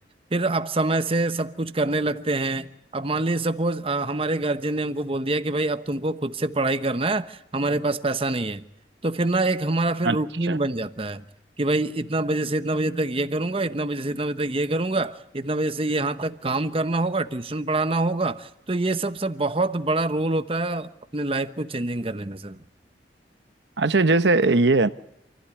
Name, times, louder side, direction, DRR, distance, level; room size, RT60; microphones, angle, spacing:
voice 1, 0.3-2.7 2.9-8.6 9.0-11.2 11.6-22.6, right 2 dB, 30° right, 1.0 m, -25 dB
voice 2, 10.0-10.6 23.8-24.9, right 3 dB, 80° right, 1.1 m, -20 dB
28.0 x 15.5 x 10.0 m
head